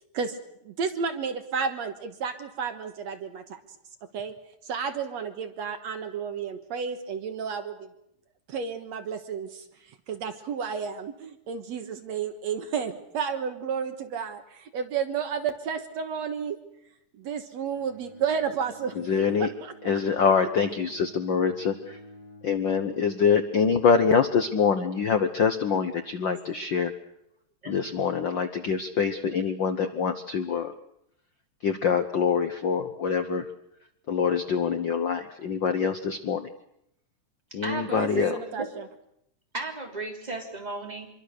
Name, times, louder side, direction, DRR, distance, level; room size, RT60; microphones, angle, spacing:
voice 1, 0.6-3.6 4.1-4.3 4.6-7.9 8.5-9.6 10.1-16.6 17.1-19.0 19.4-19.7 37.9-38.9, right 6 dB, 65° right, 7 dB, 2.4 m, -32 dB
Bowed string instrument, 17.7-22.6, right 1 dB, 35° right, 4.8 m, -50 dB
voice 2, 19.0-19.5 19.8-22.0 22.4-26.9 27.7-30.7 31.6-33.5 34.1-36.5 37.5-38.3, left 6 dB, 80° left, 9 dB, 1.0 m, -25 dB
voice 3, 37.6-38.7 39.5-41.1, right 3 dB, 15° right, 1 dB, 3.2 m, -34 dB
25.5 x 23.0 x 6.6 m, 0.78 s
omnidirectional pair, 3.6 m